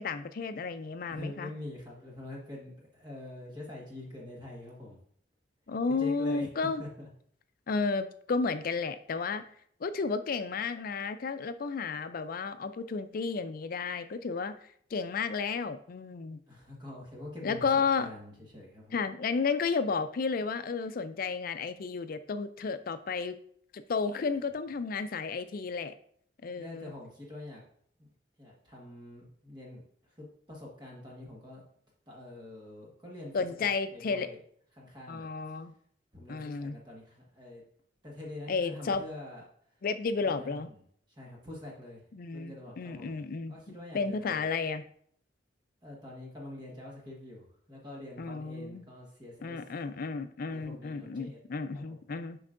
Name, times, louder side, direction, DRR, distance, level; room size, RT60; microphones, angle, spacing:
voice 1, 0.0-1.5 5.7-6.8 7.7-9.4 9.8-14.6 14.9-16.4 17.4-18.1 18.9-23.4 23.7-25.9 26.4-26.9 33.3-34.3 35.1-35.7 36.3-36.8 38.5-39.0 39.8-40.7 42.1-43.6 43.9-44.8 48.2-48.8 49.4-52.4, left 4 dB, 50° left, 11 dB, 0.4 m, -32 dB
voice 2, 1.1-5.0 5.9-6.5 6.8-7.1 16.5-17.7 18.0-19.0 26.5-27.6 28.0-28.1 28.4-31.6 32.1-34.4 34.7-35.3 36.1-37.6 38.0-39.4 40.2-40.8 41.1-42.0 42.3-43.2 43.5-44.5 45.8-49.6 50.5-51.4 51.7-52.0, left 1 dB, 25° right, -3 dB, 1.5 m, -45 dB
7.7 x 5.3 x 2.5 m, 0.62 s
head